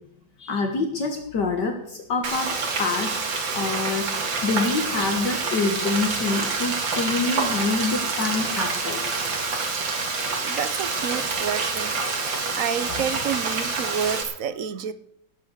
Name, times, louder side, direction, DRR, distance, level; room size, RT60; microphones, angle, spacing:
voice 1, 0.4-2.5 2.8-3.2 3.5-4.1 4.4-9.3, left 3 dB, 65° left, 4 dB, 2.1 m, -26 dB
Frying (food), 2.2-14.2, right 4 dB, 75° right, 2.8 m, -27 dB
voice 2, 10.4-12.0 12.5-14.9, right 8 dB, 55° right, 13 dB, 1.0 m, -29 dB
17.5 x 8.1 x 6.5 m, 0.73 s
omnidirectional pair, 2.1 m